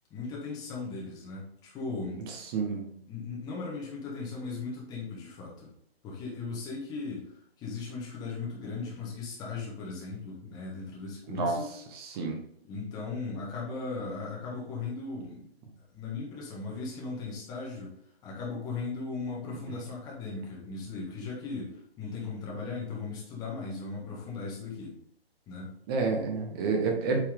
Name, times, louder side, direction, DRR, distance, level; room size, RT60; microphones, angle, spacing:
voice 1, 0.1-2.2 2.6-2.7 3.1-5.7 6.0-7.3 7.6-11.7 12.6-15.5 15.9-17.9 18.2-24.9 25.5-25.7, left 4 dB, 10° left, -4 dB, 1.5 m, -37 dB
voice 2, 2.5-2.9 11.3-11.6 11.9-12.4 25.9-27.2, right 4 dB, 20° right, 2 dB, 1.4 m, -29 dB
8.6 x 4.6 x 3.7 m, 0.70 s
figure-of-eight pair, 140°, 32 cm